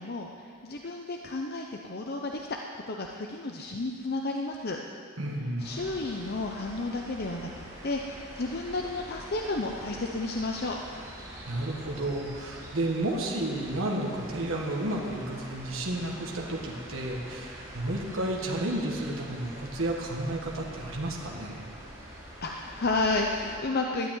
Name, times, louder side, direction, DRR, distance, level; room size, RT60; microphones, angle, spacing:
voice 1, 0.0-2.5 2.9-4.8 5.6-10.8 22.4-24.1, left 2 dB, 50° left, 1 dB, 0.8 m, -32 dB
voice 2, 5.2-5.7 11.5-21.6, right 1 dB, 70° right, -1 dB, 1.8 m, -32 dB
sound 1, 5.6-23.6, equal, 15° right, 4.6 m, -45 dB
13.0 x 9.1 x 9.3 m, 2.3 s
head